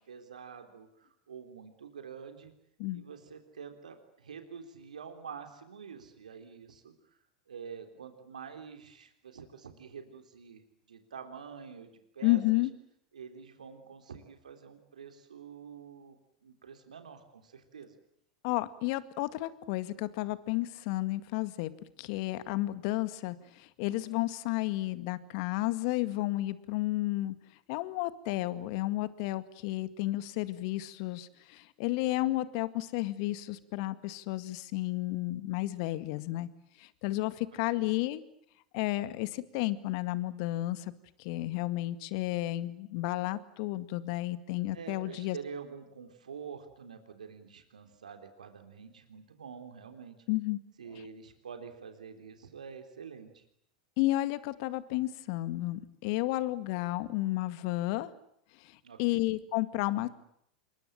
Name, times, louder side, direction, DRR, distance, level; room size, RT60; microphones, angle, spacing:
voice 1, 0.0-2.5 2.9-6.9 7.5-10.6 10.9-12.4 13.1-16.2 16.4-17.9 37.7-37.9 44.7-50.2 50.8-53.4 58.8-59.0, right 6 dB, 85° right, 7 dB, 3.6 m, -47 dB
voice 2, 12.2-12.7 18.4-21.7 22.0-27.4 27.7-36.5 36.8-38.2 38.7-40.9 41.2-45.4 50.3-50.6 50.9-51.0 54.0-58.1 58.6-60.1, left 18 dB, 55° left, 13 dB, 2.0 m, -32 dB
27.5 x 23.0 x 8.8 m, 0.74 s
hypercardioid pair, 95°, 4 cm